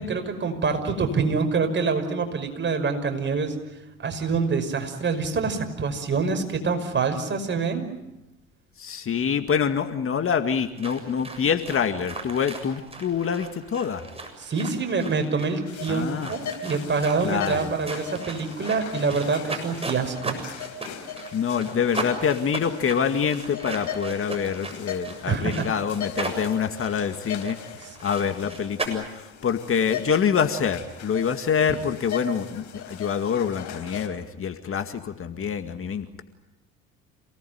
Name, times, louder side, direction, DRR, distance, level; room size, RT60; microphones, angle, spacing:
voice 1, 0.0-3.6 4.0-7.9 14.4-20.4 25.3-25.7, right 4 dB, 35° right, 6 dB, 5.6 m, -26 dB
voice 2, 8.8-14.1 15.9-16.3 17.2-17.7 21.3-36.2, left 7 dB, 40° left, 8 dB, 2.1 m, -26 dB
sound 1, 10.8-28.9, right 3 dB, 15° right, 7.3 m, -37 dB
sound 2, 15.7-34.1, left 6 dB, 60° left, 4.5 m, -39 dB
28.0 x 19.0 x 9.5 m, 0.94 s
hypercardioid pair, 65°, 33 cm